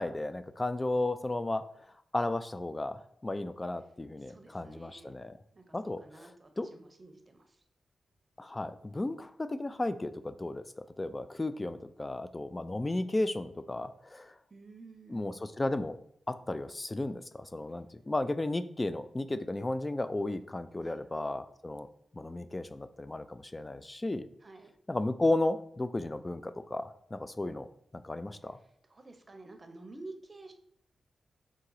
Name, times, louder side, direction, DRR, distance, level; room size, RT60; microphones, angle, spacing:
voice 1, 0.0-1.6 2.1-5.4 5.7-6.3 6.6-6.7 8.4-14.3 15.1-16.0 16.3-21.9 22.1-24.3 24.9-27.7 27.9-28.6, left 2 dB, 25° left, 12 dB, 0.3 m, -34 dB
voice 2, 4.2-5.1 5.5-7.6 14.5-15.3 20.8-21.3 24.4-24.7 28.6-30.5, right 2 dB, 35° right, 6 dB, 0.7 m, -51 dB
3.7 x 2.8 x 4.7 m, 0.68 s
cardioid pair, 75°, 0 cm